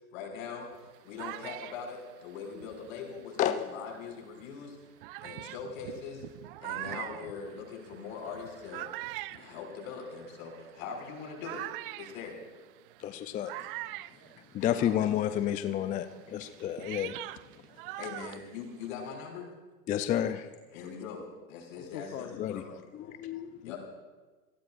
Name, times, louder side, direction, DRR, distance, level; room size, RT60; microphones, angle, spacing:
voice 1, 0.1-0.7 1.0-4.8 5.2-6.2 6.6-8.9 9.3-11.6 12.0-12.4 14.6-15.2 18.0-19.5 20.7-22.6 23.6-23.8, left 6 dB, 60° left, 1 dB, 6.0 m, -42 dB
sound 1, 0.7-3.7 4.4-4.5 5.0-15.0 15.3-19.1, right 18 dB, 40° right, 0.4 m, -43 dB
voice 2, 3.4-3.7 13.0-13.7 14.5-17.2 19.9-20.5 22.4-22.6 22.9-23.5, left 10 dB, 15° left, 10 dB, 0.5 m, -30 dB
voice 3, 21.8-23.2 23.6-23.7, left 9 dB, 75° left, 5 dB, 1.3 m, -45 dB
27.5 x 19.0 x 2.6 m, 1.3 s
hypercardioid pair, 100°, 46 cm